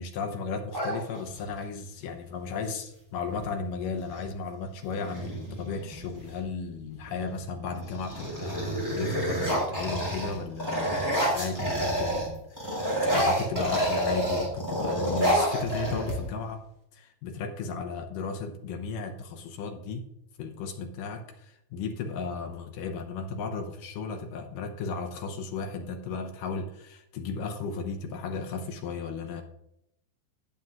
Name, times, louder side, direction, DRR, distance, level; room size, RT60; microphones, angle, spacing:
voice 1, 0.0-12.8 13.1-16.6 16.9-20.1 20.4-29.4, left 4 dB, 75° left, 4 dB, 2.0 m, -35 dB
sound 1, 0.7-1.6 3.3-3.5 3.8-4.3 4.8-6.4 7.0-7.4 7.7-12.3 12.6-16.5, equal, 5° right, 2.6 m, -29 dB
17.0 x 7.5 x 2.4 m, 0.80 s
omnidirectional pair, 4.7 m